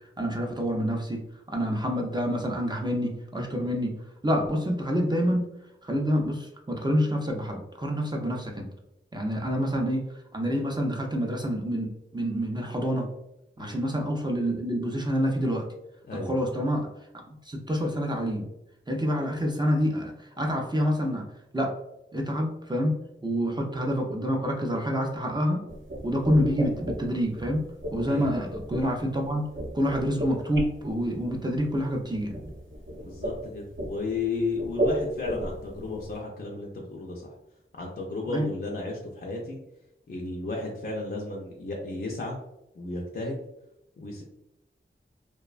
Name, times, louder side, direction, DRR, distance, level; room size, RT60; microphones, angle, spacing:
voice 1, 0.2-1.2 1.5-3.9 4.2-5.5 5.8-8.7 9.1-10.0 10.3-13.1 13.6-15.6 16.1-16.9 17.5-18.5 18.9-21.3 21.5-21.7 22.1-23.0 23.2-25.6 26.0-27.6 27.9-29.4 29.7-32.4 38.3-38.5, equal, 20° right, 1 dB, 0.4 m, -27 dB
sound 1, 25.7-36.2, equal, 65° right, 0.6 m, -35 dB
voice 2, 33.0-37.3 37.8-39.6 40.1-42.4 42.7-43.4 44.0-44.2, left 3 dB, 50° left, -2 dB, 0.4 m, -33 dB
2.5 x 2.1 x 2.3 m, 0.86 s
wide cardioid pair, 60°, 21 cm